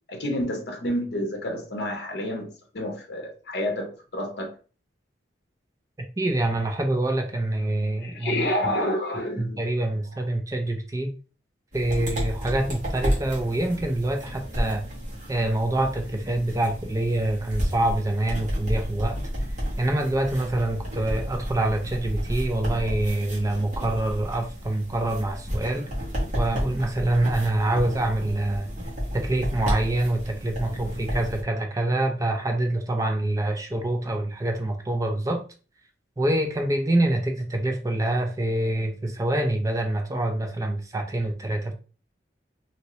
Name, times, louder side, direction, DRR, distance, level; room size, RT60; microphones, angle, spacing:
voice 1, 0.1-4.5 8.0-9.6, left 1 dB, 65° left, 0.7 m, -29 dB
voice 2, 6.2-8.5 9.4-11.1 11.7-14.8 15.3-19.2 19.8-25.9 26.3-28.7 29.1-35.4 36.2-41.7, right 1 dB, 20° right, 0.4 m, -26 dB
sound 1, 11.7-31.4, equal, 45° right, 1.3 m, -32 dB
2.8 x 2.8 x 2.9 m
head